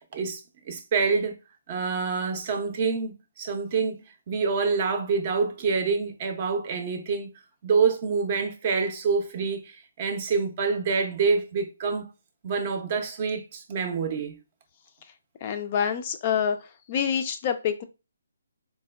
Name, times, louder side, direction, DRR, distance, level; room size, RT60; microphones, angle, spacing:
voice 1, 0.7-1.4 1.7-4.0 4.3-7.3 7.6-12.1 12.4-14.4, right 5 dB, 30° right, 0.5 m, -26 dB
voice 2, 15.4-16.6 16.9-17.8, left 8 dB, 30° left, 0.3 m, -26 dB
4.2 x 2.1 x 2.3 m
hypercardioid pair, 165°, 0 cm